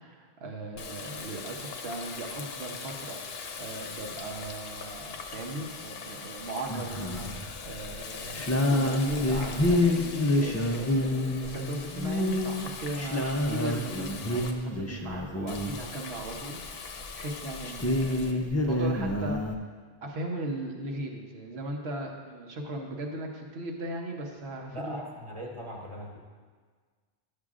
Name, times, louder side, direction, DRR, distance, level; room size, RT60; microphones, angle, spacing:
voice 1, 0.0-7.3 7.6-19.4 20.0-25.0, right 2 dB, 85° right, 1 dB, 1.2 m, -38 dB
Water tap faucet, 0.7-14.5 15.5-18.3, left 5 dB, 75° left, 0.9 m, -41 dB
sound 1, 6.7-7.4 7.8-8.0 8.3-15.8 16.6-16.7 17.0-17.1 17.3-19.5, left 1 dB, 25° left, 0.3 m, -28 dB
voice 2, 24.7-26.2, equal, 30° right, -1 dB, 1.1 m, -39 dB
10.5 x 6.6 x 2.4 m, 1.5 s
omnidirectional pair, 1.0 m